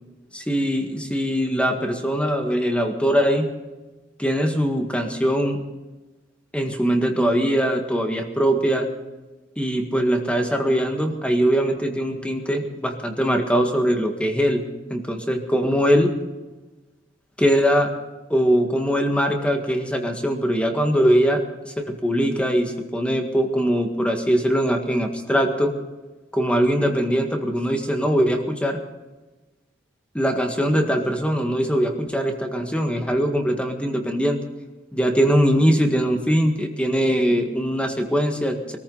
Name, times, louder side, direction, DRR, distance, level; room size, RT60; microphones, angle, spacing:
voice 1, 0.3-3.5 4.2-5.6 6.5-8.9 9.6-14.6 14.9-16.1 17.4-17.9 18.3-25.7 26.3-28.8 30.1-34.4 34.9-38.8, equal, 5° left, 4 dB, 1.8 m, -21 dB
22.0 x 14.5 x 4.0 m, 1.1 s
head